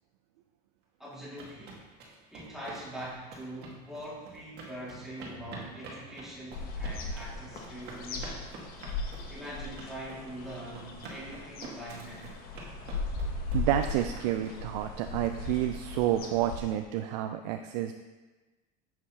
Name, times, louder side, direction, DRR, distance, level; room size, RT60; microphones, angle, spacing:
voice 1, 1.0-1.8 2.3-8.5 9.3-12.2, right 1 dB, ahead, -8 dB, 2.2 m, -43 dB
sound 1, 1.1-14.8, right 3 dB, 50° right, 1.8 m, -47 dB
sound 2, 5.2-7.3, left 2 dB, 75° left, 1.5 m, -55 dB
sound 3, 6.5-16.6, left 3 dB, 45° left, 1.0 m, -38 dB
voice 2, 13.5-17.9, right 12 dB, 85° right, 7 dB, 0.4 m, -29 dB
7.5 x 6.2 x 2.9 m, 1.2 s
supercardioid pair, 120°, 21 cm